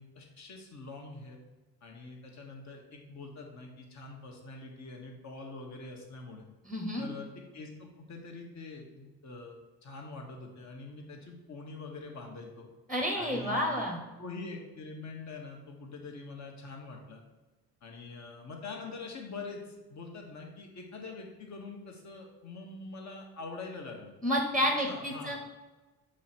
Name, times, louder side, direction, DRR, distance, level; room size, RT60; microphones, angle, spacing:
voice 1, 0.0-1.4 1.8-6.4 7.0-9.6 9.8-12.7 13.1-17.2 17.8-24.1 24.6-25.4, left 3 dB, 40° left, 1 dB, 1.4 m, -44 dB
voice 2, 6.7-7.0 12.9-14.0 24.2-25.4, equal, ahead, 1 dB, 1.0 m, -30 dB
7.2 x 3.2 x 4.4 m, 1.2 s
figure-of-eight pair, 45°, 42 cm